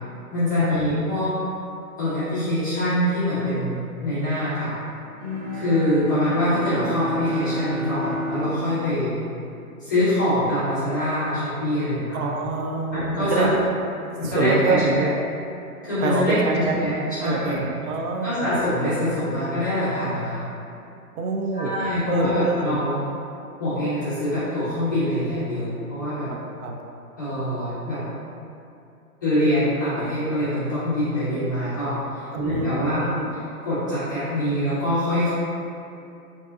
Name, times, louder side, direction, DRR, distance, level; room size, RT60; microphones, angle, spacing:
voice 1, 0.3-1.3 2.0-4.7 5.5-9.1 9.8-12.2 12.9-13.5 14.2-15.1 15.8-17.6 18.2-20.4 21.5-23.0 23.6-26.3 27.2-28.0 29.2-33.1 33.3-35.3, left 1 dB, 15° left, -15 dB, 0.4 m, -24 dB
Bowed string instrument, 5.2-10.3, left 1 dB, 40° right, 0.8 m, -31 dB
voice 2, 12.1-13.7 14.2-15.2 16.0-18.5 21.2-21.8 22.1-22.8 26.3-26.8 32.3-33.3, right 3 dB, 75° right, 2 dB, 0.6 m, -25 dB
3.7 x 2.6 x 2.3 m, 2.6 s
hypercardioid pair, 145°, 45 cm